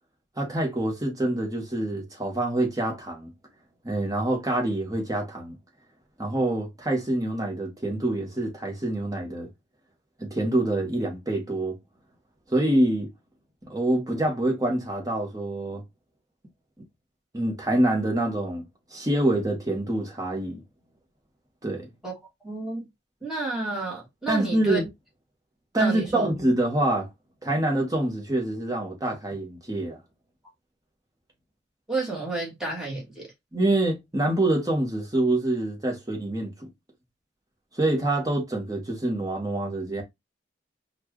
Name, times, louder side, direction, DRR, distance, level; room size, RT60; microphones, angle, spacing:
voice 1, 0.4-3.3 3.8-5.6 6.2-9.5 10.2-11.8 12.5-13.1 13.7-15.8 17.3-18.6 18.9-20.6 21.6-21.9 24.3-24.9 25.7-27.1 27.4-30.0 33.5-36.5 37.7-40.0, right 1 dB, 20° right, 1.3 m, -26 dB
voice 2, 22.4-22.8 23.2-24.8 25.8-26.3 31.9-33.3, right 2 dB, 5° right, 1.7 m, -31 dB
4.4 x 2.5 x 3.0 m
head